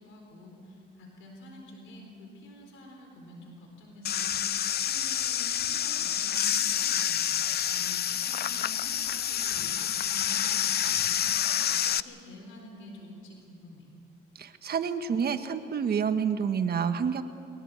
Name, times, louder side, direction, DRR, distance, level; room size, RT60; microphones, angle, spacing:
voice 1, 0.0-13.9, left 1 dB, 90° left, 2 dB, 4.1 m, -48 dB
sound 1, 4.0-12.0, left 10 dB, 55° left, 0.6 m, -28 dB
voice 2, 14.4-17.2, right 7 dB, 50° right, 9 dB, 1.4 m, -28 dB
22.5 x 19.0 x 8.3 m, 2.7 s
cardioid pair, 90°, 20 cm